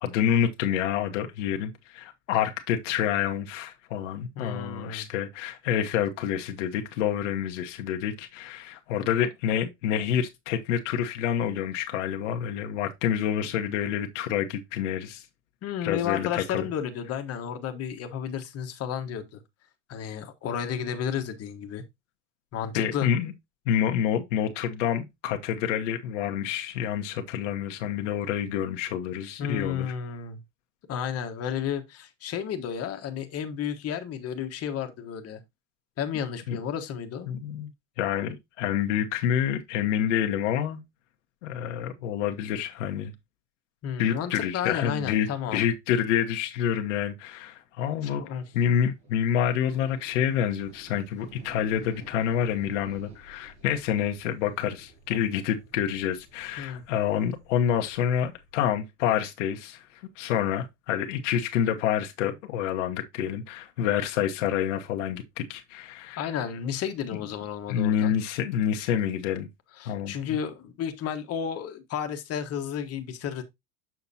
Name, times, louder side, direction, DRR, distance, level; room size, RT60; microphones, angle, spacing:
voice 1, 0.0-15.3 15.8-16.7 22.7-23.3 23.7-29.9 36.5-36.6 37.3-37.7 38.0-40.8 41.4-43.1 44.0-48.2 48.5-66.3 67.7-69.5 69.8-70.1, left 9 dB, 75° left, 1.1 m, -28 dB
voice 2, 4.4-5.1 15.6-19.4 19.9-21.8 22.5-23.1 29.4-30.4 30.9-35.4 36.0-37.3 43.8-45.6 48.0-48.4 56.6-56.8 66.2-68.1 69.8-73.4, left 8 dB, 40° left, 1.3 m, -32 dB
sound 1, 48.2-58.7, right 2 dB, 75° right, 5.1 m, -53 dB
7.2 x 5.7 x 2.7 m
hypercardioid pair, 100°, 37 cm